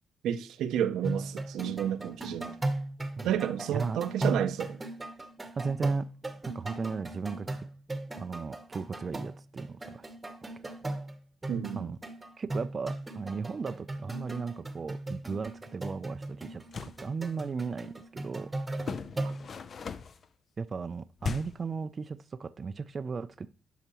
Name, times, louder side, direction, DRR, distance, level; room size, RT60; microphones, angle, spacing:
voice 1, 0.2-2.7 3.2-4.8 11.5-11.9, right 10 dB, 80° right, 0.6 m, -31 dB
sound 1, 1.0-19.5, right 2 dB, 20° right, 1.0 m, -37 dB
voice 2, 5.5-6.1 6.4-7.5 8.2-10.1 11.7-12.0 12.4-18.5 20.6-23.5, right 5 dB, 40° right, 0.4 m, -36 dB
sound 2, 16.5-17.0 18.8-20.3 21.2-21.7, left 6 dB, 50° left, 0.5 m, -38 dB
11.0 x 5.7 x 3.0 m
cardioid pair, 90°, 0 cm